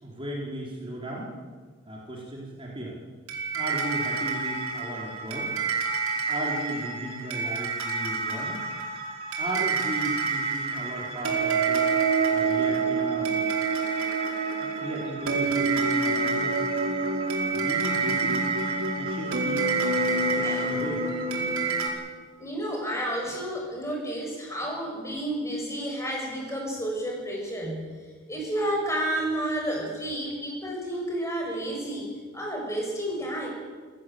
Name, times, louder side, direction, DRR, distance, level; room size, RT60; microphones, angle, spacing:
voice 1, 0.0-1.3 1.9-3.0 3.5-5.6 6.3-8.6 9.4-11.9 12.3-13.3 14.6-16.6 17.5-18.4 19.0-21.0, right 1 dB, 25° right, -4 dB, 4.1 m, -36 dB
sound 1, 3.3-21.9, right 4 dB, 85° right, 5.1 m, -27 dB
voice 2, 20.4-20.8 22.4-27.9 28.3-33.5, right 1 dB, 15° left, -1 dB, 6.7 m, -31 dB
27.0 x 16.5 x 7.9 m, 1.5 s
head